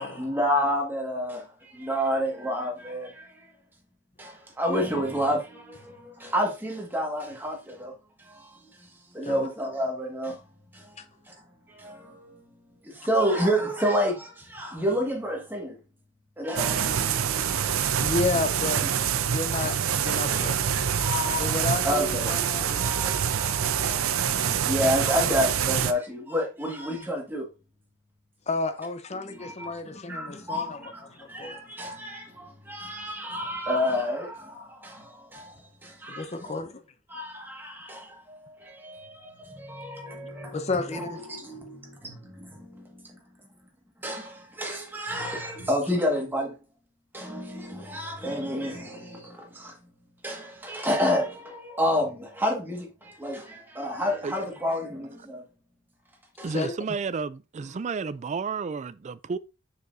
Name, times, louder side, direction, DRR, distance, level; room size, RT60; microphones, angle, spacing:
voice 1, 0.0-3.5 4.2-8.9 9.1-10.4 10.7-11.3 11.7-12.6 12.8-15.8 16.4-18.1 19.6-19.7 20.2-21.6 21.8-22.3 22.7-27.5 29.1-29.8 30.1-36.6 37.1-43.2 44.0-46.6 47.1-49.8 50.2-55.4 56.4-56.5, equal, 10° right, 1.6 m, -30 dB
sound 1, 16.6-25.9, right 8 dB, 80° right, 0.6 m, -26 dB
voice 2, 18.0-18.9 19.3-19.8 20.0-20.9 21.4-23.4 28.5-30.8 31.1-31.6 36.1-36.8 40.5-41.2 56.5-56.7, left 3 dB, 30° left, 0.7 m, -31 dB
voice 3, 56.4-59.4, right 5 dB, 35° right, 0.3 m, -31 dB
6.8 x 6.5 x 2.6 m
head